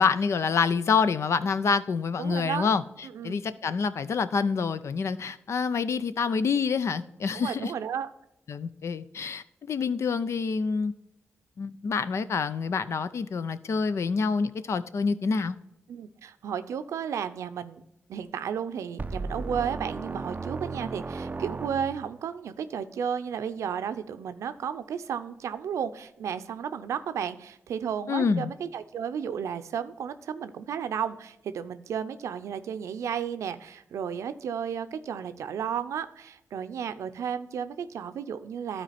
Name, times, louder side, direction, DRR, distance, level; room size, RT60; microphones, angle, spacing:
voice 1, 0.0-2.8 3.2-7.7 8.5-10.9 11.6-15.6 28.1-28.5, left 5 dB, 70° left, 14 dB, 0.5 m, -27 dB
voice 2, 2.2-2.7 3.0-3.4 7.3-8.1 15.9-17.8 18.1-38.8, right 8 dB, 90° right, 11 dB, 0.5 m, -33 dB
sound 1, 19.0-22.2, right 3 dB, 35° right, 0.4 m, -35 dB
12.5 x 4.4 x 4.2 m, 0.88 s
cardioid pair, 50°, 5 cm